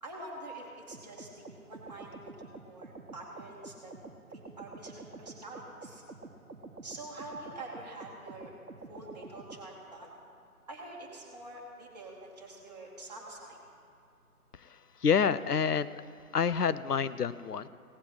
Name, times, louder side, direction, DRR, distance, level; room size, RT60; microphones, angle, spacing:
voice 1, 0.0-3.9 4.3-6.0 6.8-8.5 8.9-10.1 10.7-13.6, right 2 dB, 25° right, -4 dB, 2.1 m, -46 dB
sound 1, 0.9-9.6, right 3 dB, 80° right, 1.2 m, -48 dB
voice 2, 15.0-15.9 16.3-17.7, left 6 dB, 85° left, 15 dB, 0.6 m, -27 dB
17.5 x 7.7 x 5.5 m, 2.6 s
figure-of-eight pair, 155°, 45 cm